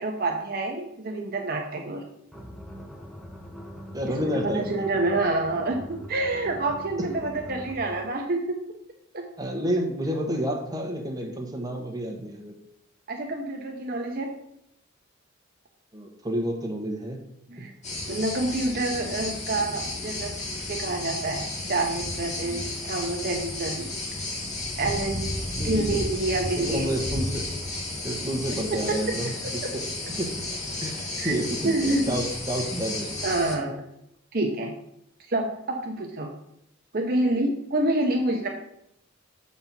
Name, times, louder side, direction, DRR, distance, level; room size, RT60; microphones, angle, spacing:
voice 1, 0.0-2.0 4.2-8.6 9.1-9.3 13.1-14.3 17.5-17.7 18.1-23.9 24.8-25.4 25.6-26.9 28.7-28.8 31.2-31.4 31.6-32.2 33.2-33.8 34.3-34.7 35.3-36.3 36.9-38.5, right 2 dB, 45° right, 2 dB, 0.7 m, -27 dB
sound 1, 2.3-8.0, equal, ahead, 0.8 m, -42 dB
voice 2, 3.9-4.8 7.0-7.1 9.4-12.6 15.9-17.2 25.6-26.0 26.5-27.5 28.0-29.8 30.2-30.3 30.8-33.2, equal, 20° right, 1 dB, 1.1 m, -30 dB
sound 2, 17.8-33.6, left 2 dB, 35° left, 1.7 m, -33 dB
6.8 x 4.2 x 5.9 m, 0.76 s
head